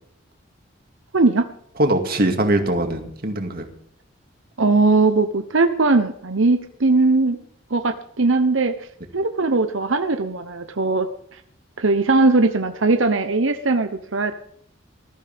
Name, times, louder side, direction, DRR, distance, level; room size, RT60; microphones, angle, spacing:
voice 1, 1.1-1.4 4.6-7.4 7.7-8.7 9.1-11.1 11.3-11.4 11.8-14.3, right 3 dB, 85° right, 8 dB, 1.0 m, -19 dB
voice 2, 1.8-3.7, right 1 dB, 50° right, 5 dB, 2.3 m, -21 dB
20.5 x 14.0 x 3.6 m, 0.66 s
head